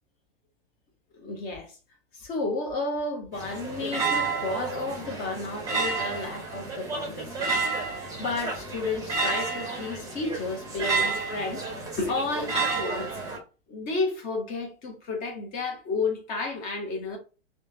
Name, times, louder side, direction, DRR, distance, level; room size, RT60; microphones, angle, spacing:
voice 1, 1.1-1.7 2.1-11.6 12.0-13.1 13.7-17.2, left 3 dB, 30° left, 1.2 m, -32 dB
sound 1, 3.3-13.4, right 4 dB, 10° right, 0.9 m, -30 dB
3.3 x 2.4 x 2.8 m
figure-of-eight pair, 100°, 32 cm